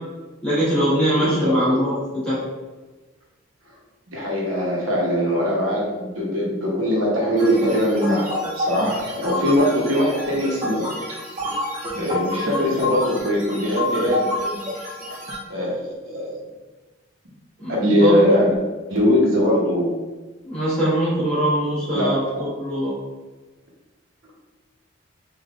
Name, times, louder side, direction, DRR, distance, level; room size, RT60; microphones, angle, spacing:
voice 1, 0.4-1.9 2.2-2.4 17.6-17.7 18.0-18.4 20.4-22.9, equal, 5° left, -12 dB, 1.1 m, -21 dB
voice 2, 1.2-1.8 4.1-10.8 11.9-14.3 15.5-16.3 17.7-18.6 18.9-19.9 21.9-22.4, left 1 dB, 90° right, -3 dB, 0.9 m, -21 dB
sound 1, 7.4-15.4, left 1 dB, 40° right, 0.7 m, -28 dB
3.6 x 2.5 x 2.4 m, 1.2 s
head